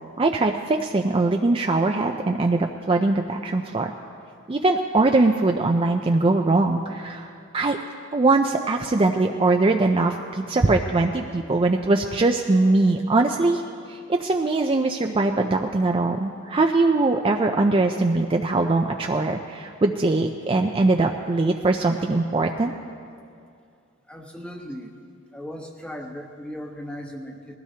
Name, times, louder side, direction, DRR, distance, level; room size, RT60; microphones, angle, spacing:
voice 1, 0.2-3.9 4.5-7.8 8.1-13.6 13.9-22.7, right 2 dB, 25° right, 3 dB, 0.4 m, -21 dB
voice 2, 24.1-24.9 25.3-27.6, equal, 5° left, 2 dB, 1.1 m, -37 dB
20.5 x 15.5 x 2.8 m, 2.4 s
head